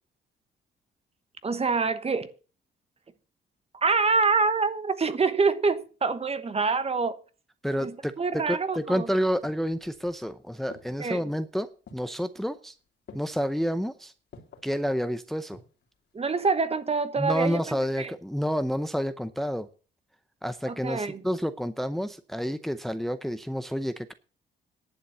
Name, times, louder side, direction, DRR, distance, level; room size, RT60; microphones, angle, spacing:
voice 1, 1.4-2.3 3.7-7.2 7.8-7.9 8.2-9.1 11.0-11.2 16.1-18.1 20.7-21.2, right 4 dB, 30° right, 1.1 m, -26 dB
voice 2, 7.6-11.7 11.9-12.7 13.1-14.1 14.6-15.6 17.2-19.7 20.4-24.1, equal, ahead, 0.7 m, -29 dB
sound 1, 9.0-10.2 10.7-11.2 11.9-12.3 13.1-13.5 14.3-14.7 15.3-15.9 16.2-16.3, left 4 dB, 60° left, 2.9 m, -49 dB
11.0 x 7.0 x 6.8 m
cardioid pair, 90°, 20 cm